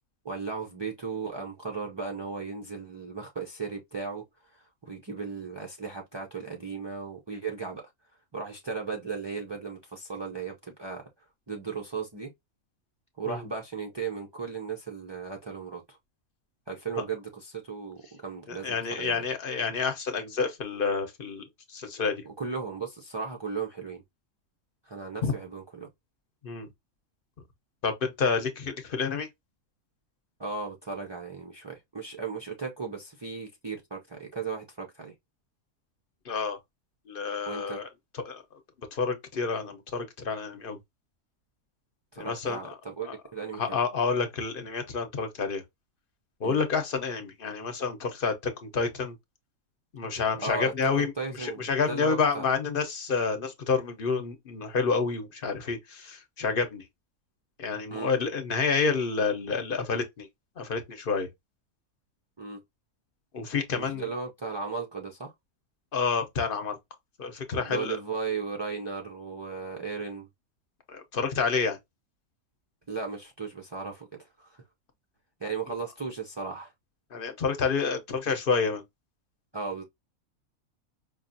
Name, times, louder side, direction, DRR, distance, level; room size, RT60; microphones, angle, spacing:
voice 1, 0.2-4.2 4.5-7.8 8.3-11.0 11.5-12.3 13.2-16.0 16.7-19.3 22.2-24.0 24.9-25.9 30.4-35.1 37.5-37.8 42.1-43.8 46.4-46.6 50.4-52.4 57.9-58.1 62.4-62.6 63.7-65.3 67.6-70.3 72.9-74.6 75.4-76.7 79.5-79.8, right 5 dB, 40° right, 0.3 m, -36 dB
voice 2, 18.5-21.4 21.7-22.1 25.2-25.3 26.4-26.7 27.8-29.3 36.2-36.6 37.1-37.8 38.3-38.4 38.9-40.8 42.2-42.7 43.1-43.2 43.6-45.6 46.4-49.1 49.9-51.1 51.4-56.8 57.6-60.3 60.6-61.3 63.3-64.1 65.9-66.8 67.2-68.0 70.9-71.8 77.1-78.8, left 5 dB, 45° left, 0.9 m, -29 dB
5.2 x 2.4 x 2.5 m
omnidirectional pair, 1.5 m